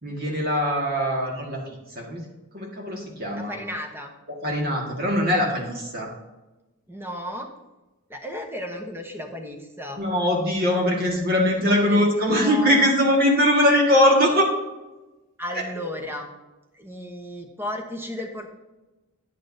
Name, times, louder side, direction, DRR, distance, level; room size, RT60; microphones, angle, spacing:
voice 1, 0.0-2.2 2.5-3.6 4.3-6.1 10.0-14.5 15.7-15.8, equal, 45° right, -1 dB, 1.6 m, -21 dB
voice 2, 3.4-4.1 6.9-7.5 8.1-10.0 11.7-12.9 15.4-16.3 16.7-18.5, left 1 dB, 10° right, 3 dB, 0.9 m, -34 dB
10.0 x 8.4 x 2.7 m, 1.1 s
head